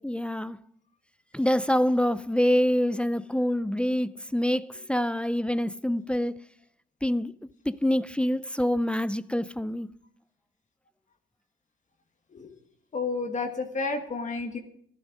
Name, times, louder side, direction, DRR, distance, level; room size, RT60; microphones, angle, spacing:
voice 1, 0.0-0.6 1.3-6.3 7.0-7.3 7.7-9.9, equal, 5° left, 0.4 m, -26 dB
voice 2, 12.9-14.6, left 4 dB, 40° left, 1.7 m, -31 dB
14.0 x 11.5 x 5.3 m
cardioid pair, 90°, 20 cm